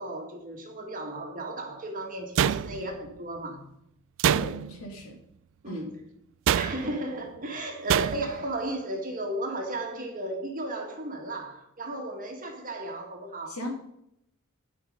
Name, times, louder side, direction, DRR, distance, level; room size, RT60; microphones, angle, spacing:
voice 1, 0.0-3.6 5.6-5.9 6.6-13.5, right 1 dB, 40° right, 2 dB, 1.9 m, -34 dB
sound 1, 2.4-3.1 4.2-4.9 6.5-7.0 7.9-8.4, right 9 dB, 60° right, 0.3 m, -26 dB
voice 2, 4.3-5.2 5.7-5.8 6.8-6.9 13.5-13.7, equal, 75° left, 1 dB, 2.7 m, -37 dB
12.5 x 5.1 x 5.3 m, 0.77 s
head